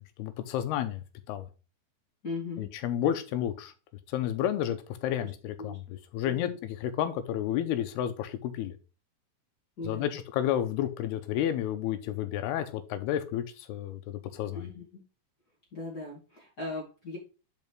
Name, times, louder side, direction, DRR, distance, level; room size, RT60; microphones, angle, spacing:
voice 1, 0.0-1.5 2.6-3.7 4.1-8.7 9.8-14.7, left 11 dB, 85° left, 10 dB, 2.8 m, -31 dB
voice 2, 2.2-2.7 5.2-5.3 5.6-5.8 6.2-6.6 9.8-10.2 14.5-15.0 15.7-17.2, left 3 dB, 30° left, -3 dB, 2.1 m, -38 dB
5.8 x 5.4 x 4.5 m, 0.34 s
omnidirectional pair, 4.5 m